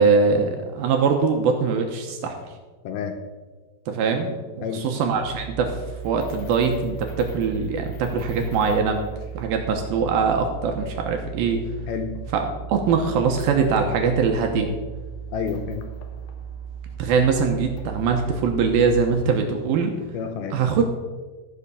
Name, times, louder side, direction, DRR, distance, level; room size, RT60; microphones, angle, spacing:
voice 1, 0.0-2.3 3.9-5.7 6.0-9.0 9.3-11.6 12.3-12.4 12.7-14.7 17.0-19.9 20.5-20.8, right 5 dB, 75° right, 4 dB, 2.5 m, -22 dB
voice 2, 2.8-3.2 4.6-4.9 11.9-12.2 15.3-15.8 20.1-20.6, left 6 dB, 75° left, 6 dB, 2.5 m, -29 dB
sound 1, 5.1-19.0, right 7 dB, 90° left, 1.6 m, -37 dB
13.5 x 5.8 x 6.8 m, 1.3 s
omnidirectional pair, 4.9 m